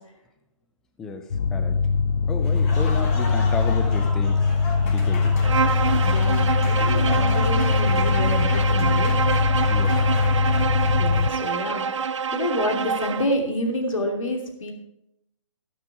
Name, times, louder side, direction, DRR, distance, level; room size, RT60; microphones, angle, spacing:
voice 1, 1.0-1.8 2.3-4.5 4.8-5.4 9.7-10.0, left 4 dB, 5° left, 7 dB, 0.3 m, -33 dB
sound 1, 1.3-11.3, left 4 dB, 55° left, 0.7 m, -21 dB
Applause, 2.4-11.8, left 2 dB, 30° left, 3.2 m, -36 dB
Bowed string instrument, 5.4-13.3, right 6 dB, 65° right, 0.7 m, -26 dB
voice 2, 6.0-9.1 11.0-11.8 12.3-14.7, left 1 dB, 80° left, 3 dB, 3.0 m, -28 dB
13.0 x 9.2 x 4.8 m, 0.84 s
hypercardioid pair, 155°, 17 cm